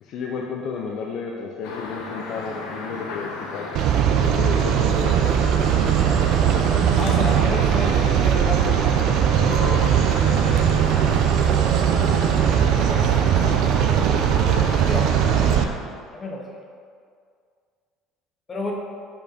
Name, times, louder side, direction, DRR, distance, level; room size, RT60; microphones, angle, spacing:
voice 1, 0.0-3.7 4.2-5.3 9.6-9.8, left 5 dB, 60° left, -1 dB, 0.6 m, -32 dB
sound 1, 1.6-15.7, left 3 dB, 85° left, 0.9 m, -33 dB
sound 2, 3.7-15.6, right 9 dB, 65° right, 0.4 m, -19 dB
voice 2, 7.0-8.8 10.3-11.0 12.9-13.2 14.6-15.7 16.1-16.6 18.5-18.7, left 2 dB, 25° left, 0 dB, 1.1 m, -32 dB
5.5 x 4.4 x 5.1 m, 2.2 s
cardioid pair, 110°, 0 cm